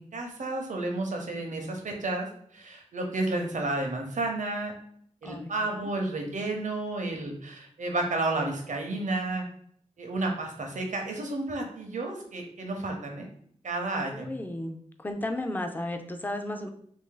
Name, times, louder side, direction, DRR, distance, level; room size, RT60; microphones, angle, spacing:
voice 1, 0.0-2.3 2.5-4.7 5.2-9.5 10.0-13.3 13.6-14.3, right 2 dB, 85° right, 2 dB, 0.7 m, -31 dB
voice 2, 13.9-16.7, left 1 dB, 15° left, 5 dB, 0.4 m, -34 dB
3.0 x 2.6 x 3.8 m, 0.62 s
wide cardioid pair, 105°, 12 cm